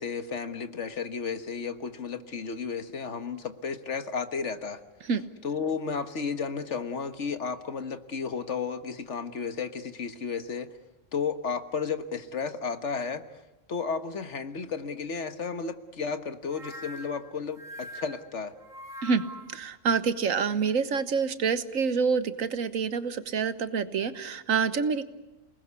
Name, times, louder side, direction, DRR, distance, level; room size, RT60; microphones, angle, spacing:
voice 1, 0.0-4.8 5.4-10.7 11.1-13.2 13.7-18.5, left 5 dB, 65° left, 10 dB, 1.7 m, -33 dB
sound 1, 16.5-19.6, equal, 35° right, 3.9 m, -43 dB
voice 2, 19.5-25.0, right 5 dB, 90° right, 13 dB, 1.6 m, -27 dB
28.5 x 19.5 x 8.3 m, 1.0 s
omnidirectional pair, 1.3 m